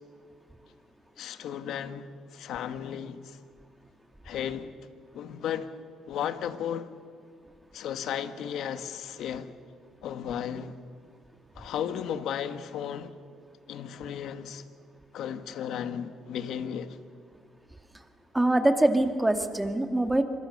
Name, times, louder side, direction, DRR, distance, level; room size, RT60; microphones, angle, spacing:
voice 1, 1.2-3.4 4.2-4.7 5.1-5.7 6.1-6.9 7.7-9.5 10.0-10.8 11.5-13.1 13.7-14.7 15.1-17.0, left 9 dB, 70° left, 1.5 m, -34 dB
voice 2, 18.3-20.2, right 1 dB, 10° right, 2.2 m, -23 dB
27.0 x 23.5 x 6.7 m
cardioid pair, 95°, 0 cm